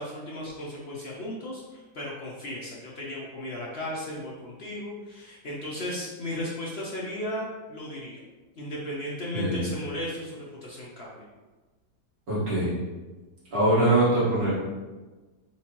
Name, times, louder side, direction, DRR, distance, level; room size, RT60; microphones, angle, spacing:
voice 1, 0.0-8.2 8.6-11.2, left 1 dB, 65° left, -5 dB, 0.6 m, -35 dB
voice 2, 12.3-12.7 13.5-14.5, right 1 dB, 55° right, -10 dB, 2.0 m, -23 dB
4.4 x 3.5 x 2.9 m, 1.2 s
omnidirectional pair, 1.9 m